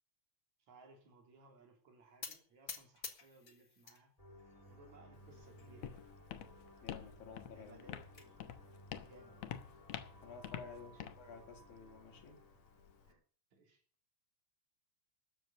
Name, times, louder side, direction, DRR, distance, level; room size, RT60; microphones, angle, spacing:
voice 1, 0.6-4.2 4.7-6.2 7.5-8.5 9.0-10.0 10.6-11.1 13.0-13.2 13.5-13.8, right 3 dB, 55° right, 4.2 m, -63 dB
sound 1, 2.2-4.0 4.4-5.0 5.6-5.7 6.0-6.1 6.4-6.5 7.6-8.3, left 5 dB, 40° left, 1.2 m, -49 dB
sound 2, 4.2-13.2, equal, 10° left, 2.9 m, -59 dB
Walk footsteps, 5.1-13.1, left 10 dB, 65° left, 2.0 m, -49 dB
voice 2, 6.8-7.9 10.2-12.4, left 5 dB, 90° left, 4.2 m, -53 dB
13.0 x 10.5 x 6.8 m
omnidirectional pair, 4.0 m